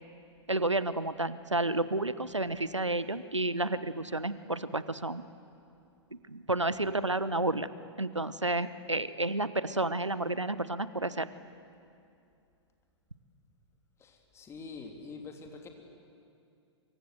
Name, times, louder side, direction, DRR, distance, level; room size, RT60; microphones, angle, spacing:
voice 1, 0.5-5.2 6.1-7.7 8.0-11.3, right 2 dB, 90° right, 15 dB, 1.0 m, -31 dB
voice 2, 14.0-15.7, left 4 dB, 20° left, 4 dB, 2.9 m, -45 dB
25.5 x 24.0 x 7.9 m, 2.5 s
figure-of-eight pair, 105°, 15 cm